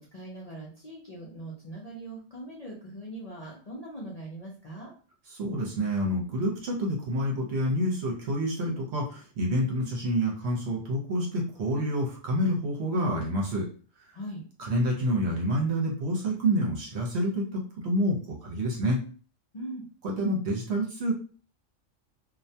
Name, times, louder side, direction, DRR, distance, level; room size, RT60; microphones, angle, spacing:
voice 1, 0.0-4.9 14.1-14.4 19.5-19.8, right 1 dB, 45° left, -5 dB, 0.5 m, -41 dB
voice 2, 5.3-13.7 14.6-19.0 20.2-21.1, equal, 65° right, -1 dB, 0.9 m, -28 dB
2.3 x 2.2 x 2.7 m, 0.40 s
omnidirectional pair, 1.3 m